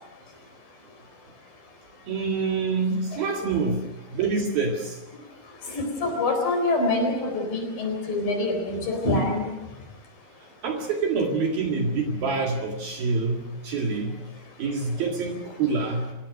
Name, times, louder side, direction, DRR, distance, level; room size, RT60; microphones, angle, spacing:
voice 1, 2.1-3.9 4.1-5.0 10.6-14.2 14.6-16.1, right 4 dB, 55° right, 2 dB, 3.4 m, -26 dB
voice 2, 5.7-9.5, left 2 dB, 50° left, 4 dB, 5.5 m, -25 dB
28.0 x 16.5 x 6.5 m, 0.99 s
omnidirectional pair, 5.6 m